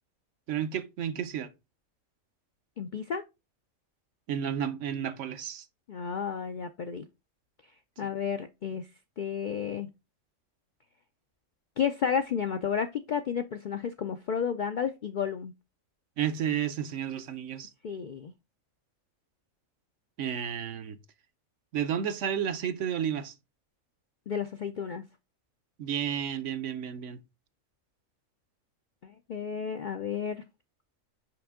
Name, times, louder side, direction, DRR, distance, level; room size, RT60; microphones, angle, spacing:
voice 1, 0.5-1.5 4.3-5.7 16.2-17.7 20.2-21.0 21.7-23.3 25.8-27.2, right 9 dB, 70° right, 1.0 m, -32 dB
voice 2, 2.8-3.2 5.9-7.0 8.0-8.9 9.2-9.9 11.8-15.5 17.8-18.3 24.3-25.1 29.0-30.4, left 7 dB, 65° left, 0.4 m, -32 dB
6.0 x 5.2 x 3.6 m
omnidirectional pair, 1.4 m